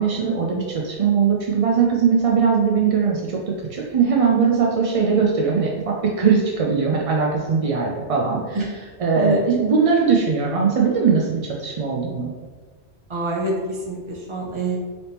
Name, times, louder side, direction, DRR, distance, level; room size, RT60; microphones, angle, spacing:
voice 1, 0.0-8.6 9.0-12.3, right 5 dB, 60° right, -2 dB, 0.3 m, -20 dB
voice 2, 13.1-14.8, right 2 dB, 30° right, -2 dB, 0.7 m, -25 dB
4.0 x 3.4 x 2.8 m, 1.4 s
omnidirectional pair, 1.2 m